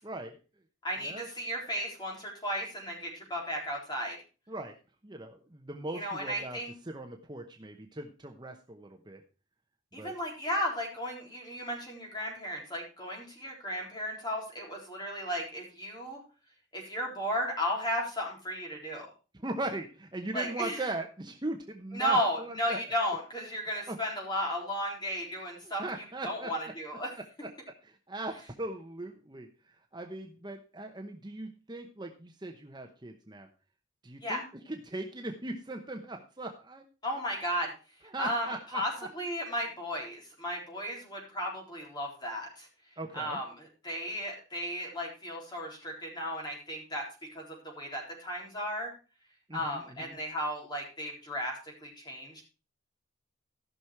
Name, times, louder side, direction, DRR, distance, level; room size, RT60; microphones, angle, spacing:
voice 1, 0.0-0.4 1.0-1.3 4.5-4.7 5.0-9.2 9.9-10.1 19.3-22.8 23.9-24.0 25.6-26.5 27.4-27.5 27.8-33.5 34.0-36.8 38.0-39.1 43.0-43.4 49.5-50.1, right 2 dB, 20° right, 4 dB, 0.9 m, -39 dB
voice 2, 0.8-4.2 5.9-6.7 9.9-16.2 16.7-19.1 20.3-20.8 21.9-25.8 26.2-27.1 34.2-34.4 37.0-37.7 38.2-38.5 38.7-42.7 43.1-48.9 49.5-52.4, equal, 20° left, -1 dB, 4.0 m, -34 dB
15.0 x 6.2 x 4.7 m, 0.33 s
head